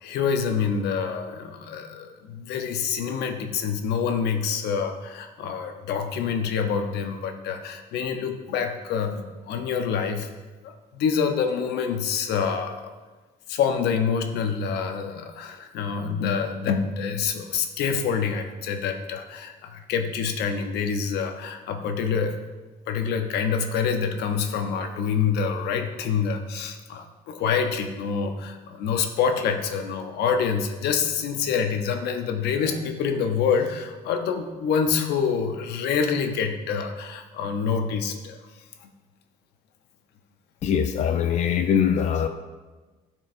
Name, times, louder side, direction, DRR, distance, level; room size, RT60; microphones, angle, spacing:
voice 1, 0.0-10.3 10.6-12.9 13.5-22.4 22.9-38.4 38.8-38.9, left 6 dB, 75° left, 6 dB, 0.8 m, -26 dB
voice 2, 40.6-42.3, left 8 dB, 45° left, 6 dB, 0.4 m, -22 dB
12.5 x 4.6 x 2.6 m, 1.3 s
cardioid pair, 110°, 17 cm